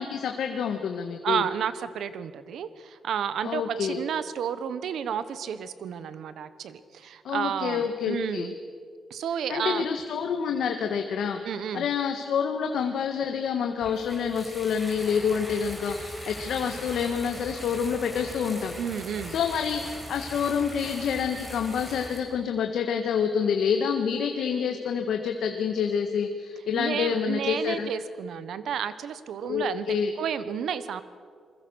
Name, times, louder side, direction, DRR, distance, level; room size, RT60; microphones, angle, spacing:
voice 1, 0.0-1.4 3.4-4.0 7.2-8.5 9.5-11.4 11.7-18.7 19.3-27.9 29.4-30.1, left 7 dB, 80° left, 5 dB, 1.6 m, -27 dB
voice 2, 1.2-8.5 9.1-9.9 11.4-11.9 18.8-19.4 26.7-29.8 30.2-31.0, right 8 dB, 75° right, 13 dB, 1.3 m, -31 dB
sound 1, 13.8-22.2, equal, 5° right, 5.3 m, -41 dB
28.0 x 21.5 x 6.5 m, 2.1 s
wide cardioid pair, 160°, 0 cm